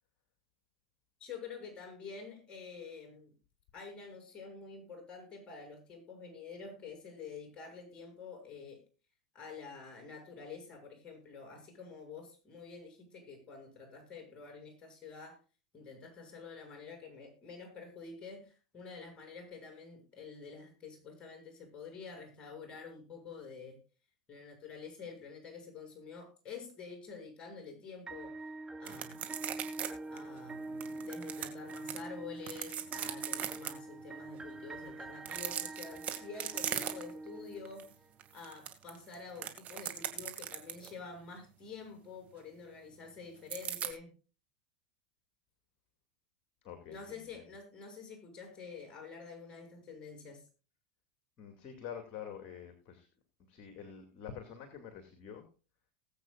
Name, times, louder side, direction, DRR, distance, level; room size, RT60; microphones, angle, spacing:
voice 1, 1.2-3.3 3.7-8.8 9.3-15.4 15.7-23.8 24.3-28.3 28.8-29.2 30.1-37.9 38.3-44.1 46.9-50.4, left 5 dB, 30° left, 2 dB, 7.3 m, -48 dB
sound 1, 28.1-38.1, right 2 dB, 15° right, 1.1 m, -45 dB
sound 2, 28.8-29.9 30.2-30.3 30.8-32.0 32.4-33.7 35.2-37.3 37.6-37.9 38.2-41.0 43.5-43.9, right 10 dB, 40° right, 2.2 m, -39 dB
voice 2, 46.6-47.5 51.4-53.1 53.5-55.5, left 8 dB, 45° left, 5 dB, 2.4 m, -47 dB
20.0 x 8.2 x 2.5 m, 0.34 s
hypercardioid pair, 90°, 4 cm